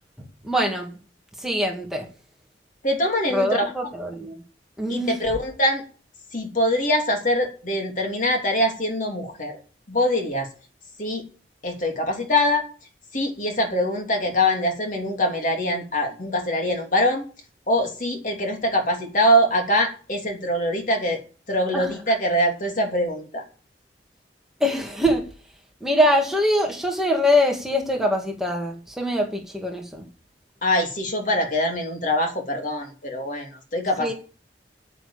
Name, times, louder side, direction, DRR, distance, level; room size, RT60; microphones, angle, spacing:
voice 1, 0.4-0.9 1.4-2.1 3.3-4.4 4.8-5.1 21.7-21.9 24.6-25.2 25.8-30.1 34.0-34.1, left 1 dB, 5° right, 1 dB, 2.2 m, -23 dB
voice 2, 2.8-3.6 4.9-5.8 6.3-9.6 9.9-10.5 11.0-11.2 11.6-12.7 13.1-17.2 17.7-21.2 21.5-23.4 30.6-34.1, left 1 dB, 50° left, 2 dB, 3.0 m, -23 dB
9.1 x 9.0 x 8.7 m, 0.38 s
head